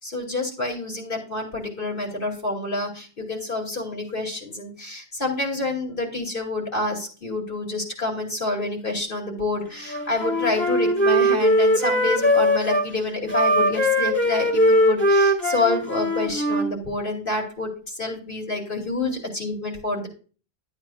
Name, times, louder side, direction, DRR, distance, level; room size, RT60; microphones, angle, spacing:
voice 1, 0.0-17.7 17.9-20.1, left 2 dB, 55° left, -1 dB, 3.0 m, -28 dB
Wind instrument woodwind instrument, 9.9-12.9 13.3-16.7, equal, 10° left, 1.5 m, -20 dB
12.0 x 8.8 x 2.4 m, 0.37 s
omnidirectional pair, 1.0 m